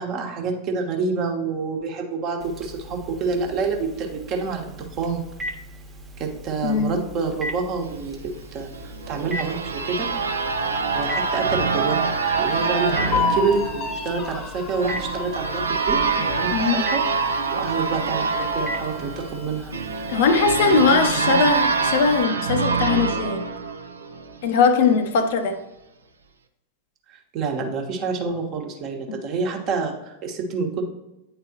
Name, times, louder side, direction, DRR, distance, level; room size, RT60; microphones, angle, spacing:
voice 1, 0.0-5.2 6.2-10.6 10.9-12.1 12.4-19.7 20.6-21.5 27.1-30.8, right 4 dB, 40° right, 2 dB, 1.2 m, -28 dB
Telephone, 2.4-22.2, equal, 15° right, 1.1 m, -39 dB
voice 2, 6.6-7.0 16.5-16.9 20.1-23.5 24.4-25.6 29.1-29.2, left 5 dB, 55° left, 8 dB, 0.6 m, -20 dB
sound 1, 8.7-24.4, right 4 dB, 75° right, 0.5 m, -25 dB
sound 2, 12.0-19.7 20.1-20.2 20.6-21.3, left 5 dB, 25° left, 0.9 m, -33 dB
9.4 x 4.0 x 2.8 m, 0.99 s
figure-of-eight pair, 90°, 0 cm